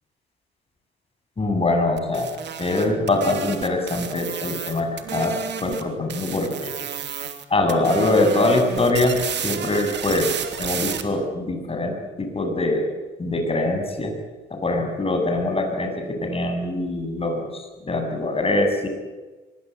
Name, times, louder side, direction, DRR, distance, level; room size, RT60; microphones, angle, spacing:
voice 1, 1.4-2.3 2.6-6.7 7.5-10.3 10.6-12.9 13.2-14.1 14.5-18.9, left 2 dB, 30° left, 5 dB, 7.8 m, -23 dB
sound 1, 2.0-5.8 6.1-7.4 7.7-11.0, right 8 dB, 60° right, 3.1 m, -31 dB
24.0 x 22.5 x 9.3 m, 1.2 s
cardioid pair, 90°, 20 cm